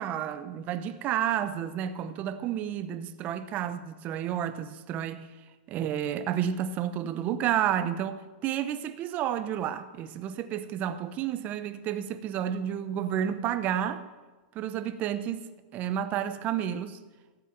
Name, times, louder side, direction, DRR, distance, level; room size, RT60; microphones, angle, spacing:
voice 1, 0.0-5.3 5.7-14.0 14.5-17.0, right 10 dB, 35° right, 0.9 m, -31 dB
13.0 x 8.2 x 7.0 m
supercardioid pair, 140°, 5 cm